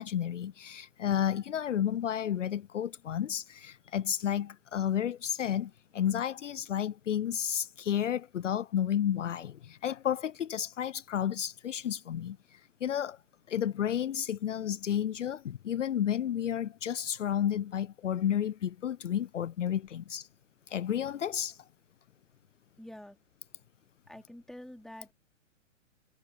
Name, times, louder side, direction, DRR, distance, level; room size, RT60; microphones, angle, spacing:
voice 1, 0.0-13.2 13.5-20.3 20.7-21.6, left 9 dB, 70° left, 0.7 m, -32 dB
voice 2, 22.8-23.2 24.1-25.1, left 1 dB, ahead, 2.8 m, -47 dB
figure-of-eight pair, 115°, 38 cm